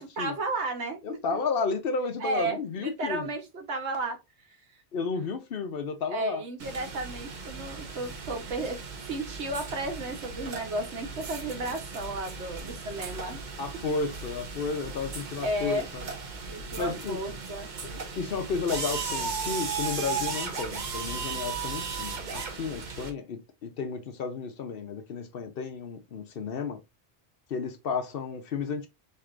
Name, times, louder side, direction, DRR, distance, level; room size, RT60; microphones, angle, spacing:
voice 1, 0.0-1.0 2.2-4.2 6.1-8.8 9.1-13.4 15.4-15.9 16.5-17.7, right 2 dB, 85° right, 1.3 m, -33 dB
voice 2, 1.0-3.3 4.9-6.4 13.6-16.1 16.8-17.2 18.2-26.8 27.5-28.9, left 5 dB, 60° left, 0.8 m, -32 dB
sound 1, 6.6-23.1, right 5 dB, 45° right, 0.8 m, -36 dB
4.5 x 2.9 x 2.4 m
omnidirectional pair, 1.1 m